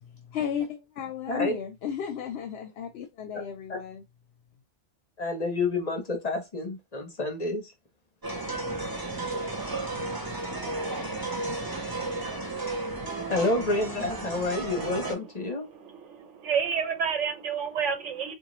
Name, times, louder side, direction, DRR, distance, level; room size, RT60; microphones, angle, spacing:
voice 1, 0.0-4.0, left 8 dB, 65° left, 0.8 m, -34 dB
voice 2, 5.2-7.7 13.3-15.7, left 2 dB, 40° left, 0.8 m, -29 dB
sound 1, 8.2-15.1, right 2 dB, 20° right, 0.9 m, -33 dB
voice 3, 15.6-18.3, right 6 dB, 85° right, 1.1 m, -30 dB
3.8 x 2.5 x 3.0 m
omnidirectional pair, 1.2 m